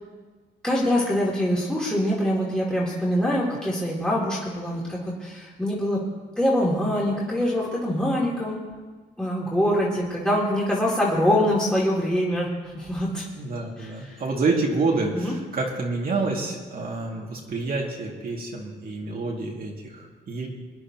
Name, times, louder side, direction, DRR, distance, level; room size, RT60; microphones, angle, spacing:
voice 1, 0.6-6.0 6.4-8.6 9.2-13.3 13.8-14.2 15.1-15.3, equal, 5° left, -6 dB, 2.8 m, -24 dB
voice 2, 13.4-20.5, right 3 dB, 50° right, -2 dB, 2.2 m, -28 dB
23.0 x 10.0 x 3.0 m, 1.4 s
cardioid pair, 90°, 20 cm